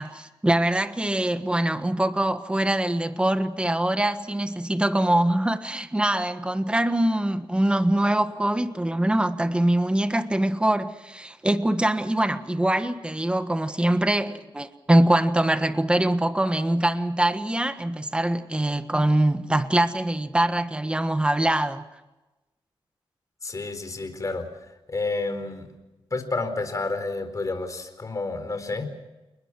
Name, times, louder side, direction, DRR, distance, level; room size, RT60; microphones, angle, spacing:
voice 1, 0.0-21.9, right 1 dB, 10° right, 1.4 m, -23 dB
voice 2, 23.4-24.5 24.9-25.7 26.1-28.9, left 3 dB, 35° left, 4.3 m, -30 dB
29.0 x 20.5 x 6.1 m
wide cardioid pair, 100°, 9 cm